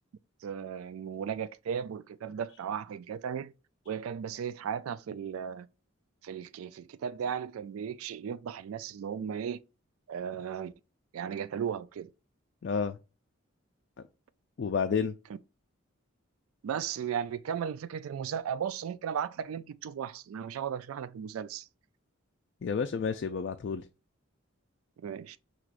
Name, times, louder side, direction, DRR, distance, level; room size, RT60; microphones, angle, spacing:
voice 1, 0.4-3.5 3.9-5.7 6.2-9.6 10.1-10.7 11.1-12.1 14.9-15.0 16.6-21.7 25.0-25.4, right 8 dB, 90° right, 0.3 m, -36 dB
voice 2, 12.6-13.0 14.6-15.1 22.6-23.8, left 6 dB, 55° left, 0.3 m, -30 dB
6.0 x 3.0 x 2.4 m
head